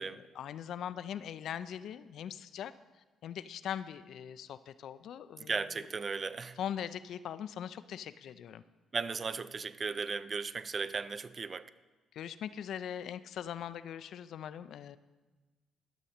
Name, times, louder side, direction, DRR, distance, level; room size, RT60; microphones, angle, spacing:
voice 1, 0.4-2.7 3.2-5.6 6.6-8.6 12.1-15.0, left 9 dB, 65° left, 14 dB, 0.3 m, -41 dB
voice 2, 5.4-6.6 8.9-11.7, right 5 dB, 40° right, 15 dB, 0.4 m, -36 dB
12.0 x 6.3 x 4.3 m, 1.2 s
hypercardioid pair, 50°, 0 cm